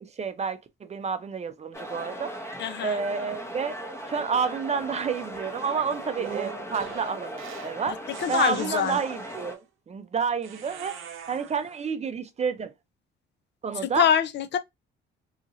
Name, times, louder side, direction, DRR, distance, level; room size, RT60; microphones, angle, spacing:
voice 1, 0.0-3.8 4.1-8.0 8.3-11.0 11.3-12.7 13.6-14.1, right 6 dB, 30° right, 0.5 m, -30 dB
sound 1, 1.7-9.6, equal, 15° left, 0.8 m, -38 dB
voice 2, 2.6-3.0 7.9-9.0 13.8-14.6, left 9 dB, 55° left, 0.5 m, -25 dB
sound 2, 6.2-7.8 8.1-9.6 10.4-11.8, right 8 dB, 75° right, 0.6 m, -41 dB
2.9 x 2.6 x 2.5 m
cardioid pair, 95°, 21 cm